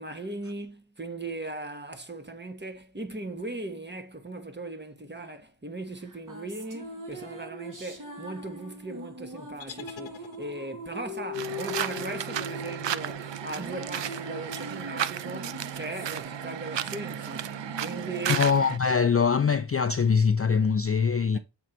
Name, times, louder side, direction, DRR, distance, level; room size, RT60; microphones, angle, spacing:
voice 1, 0.0-18.4 21.3-21.4, right 2 dB, 20° right, 1.2 m, -38 dB
sound 1, 6.0-19.6, left 1 dB, 40° right, 1.9 m, -41 dB
sound 2, 9.6-10.9, left 9 dB, 70° left, 0.7 m, -46 dB
sound 3, 11.3-18.8, right 10 dB, 65° right, 0.6 m, -34 dB
voice 2, 18.3-21.4, left 6 dB, 30° left, 0.4 m, -23 dB
7.1 x 4.6 x 3.9 m
wide cardioid pair, 75°, 48 cm